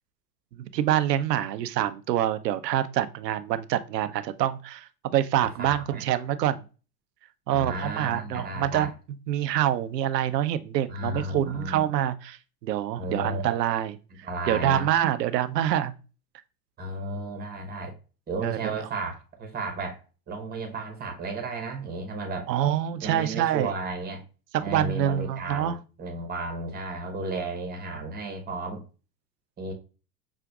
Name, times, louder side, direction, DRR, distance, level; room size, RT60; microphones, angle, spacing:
voice 1, 0.6-6.6 7.5-8.9 9.3-14.0 14.5-15.9 18.4-18.9 22.5-23.7 24.5-25.8, right 11 dB, 75° right, 0.6 m, -26 dB
voice 2, 5.6-6.0 7.5-8.9 10.9-11.8 13.0-13.5 14.2-14.9 16.8-17.9 18.3-22.5 23.0-24.2 24.6-28.8 29.6-29.7, right 2 dB, 20° right, 1.1 m, -33 dB
5.9 x 2.5 x 2.4 m
hypercardioid pair, 95°, 49 cm